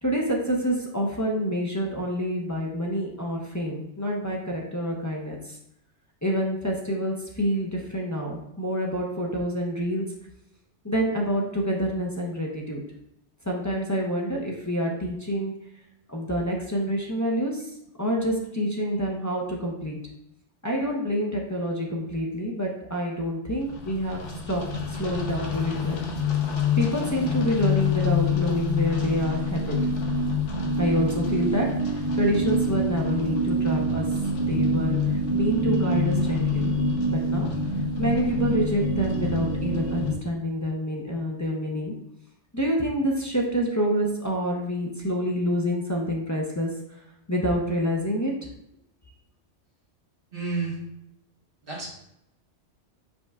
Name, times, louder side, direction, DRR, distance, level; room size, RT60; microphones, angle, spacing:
voice 1, 0.0-5.6 6.2-10.0 10.8-12.8 13.4-15.5 16.1-17.7 18.0-20.0 20.6-24.2 24.5-26.0 26.8-29.8 30.8-34.1 34.4-36.7 37.1-37.5 38.0-41.9 42.5-46.7 47.3-48.3, equal, 25° left, -3 dB, 0.4 m, -27 dB
sound 1, 23.6-40.2, left 2 dB, 85° left, 1.2 m, -26 dB
voice 2, 50.3-50.8 51.6-51.9, right 4 dB, 50° right, -5 dB, 1.6 m, -30 dB
5.1 x 4.5 x 2.3 m, 0.81 s
omnidirectional pair, 1.2 m